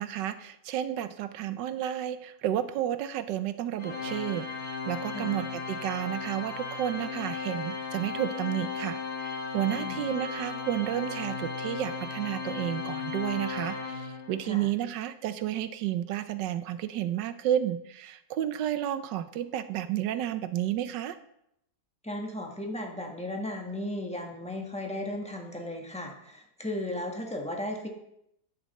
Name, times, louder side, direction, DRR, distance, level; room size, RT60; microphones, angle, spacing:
voice 1, 0.0-4.5 4.9-21.2, right 11 dB, 90° right, 12 dB, 1.3 m, -31 dB
Organ, 3.8-14.6, left 5 dB, 55° left, 2.7 m, -36 dB
voice 2, 22.0-27.9, left 1 dB, 5° left, 1 dB, 1.2 m, -35 dB
10.5 x 8.7 x 4.1 m, 0.79 s
omnidirectional pair, 1.8 m